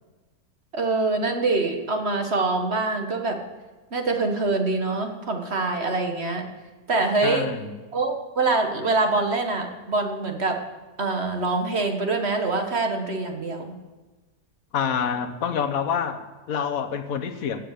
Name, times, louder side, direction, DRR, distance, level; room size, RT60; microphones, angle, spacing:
voice 1, 0.7-3.4 3.9-6.5 6.9-7.5 7.9-10.6 11.0-13.7, right 3 dB, 40° right, 4 dB, 1.6 m, -24 dB
voice 2, 7.2-7.7 14.7-17.6, left 7 dB, 60° left, 8 dB, 1.4 m, -27 dB
16.5 x 8.0 x 6.6 m, 1.2 s
omnidirectional pair, 1.8 m